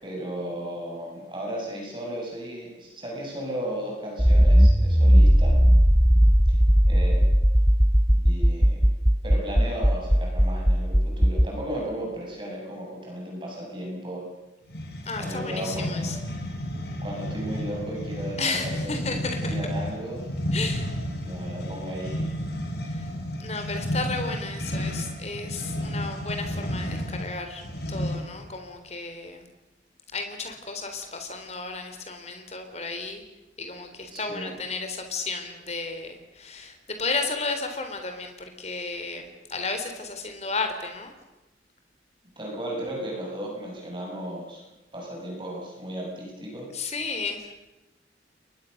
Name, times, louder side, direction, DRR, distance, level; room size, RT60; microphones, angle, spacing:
voice 1, 0.0-5.6 6.9-7.3 8.1-8.8 9.2-14.2 15.2-16.1 17.0-20.2 21.2-22.2 34.1-34.6 42.4-44.6 44.9-46.7, right 1 dB, 25° right, -1 dB, 7.0 m, -35 dB
Accelerating revving vroom, 4.2-11.5, equal, 5° right, 0.8 m, -18 dB
sound 1, 14.7-28.4, equal, 60° left, 5.5 m, -32 dB
voice 2, 15.1-16.2 18.4-19.6 20.5-20.9 22.9-23.1 23.4-27.6 27.9-29.5 30.1-33.2 33.6-41.1 46.7-47.5, left 3 dB, 35° left, 6 dB, 3.8 m, -33 dB
29.5 x 22.5 x 6.7 m, 1.0 s
head